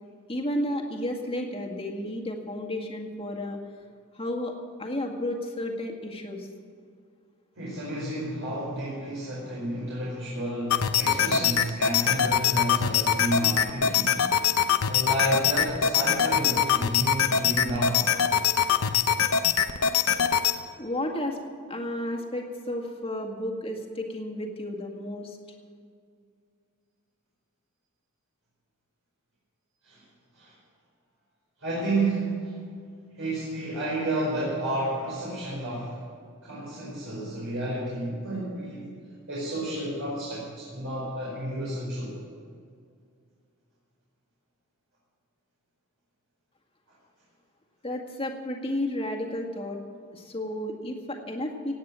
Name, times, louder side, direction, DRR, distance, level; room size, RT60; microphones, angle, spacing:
voice 1, 0.3-3.6 4.1-4.5 4.8-6.5 20.8-25.4 47.8-49.8 50.1-51.7, left 1 dB, 25° left, 1 dB, 2.0 m, -32 dB
voice 2, 7.6-14.2 14.9-18.0 20.5-20.6 29.8-30.0 30.3-30.5 31.6-32.5 33.2-36.0 36.4-38.9 39.3-42.1, right 1 dB, 65° right, -7 dB, 5.0 m, -31 dB
sound 1, 10.7-20.6, left 8 dB, 80° left, 0.8 m, -23 dB
17.5 x 9.3 x 7.6 m, 2.2 s
head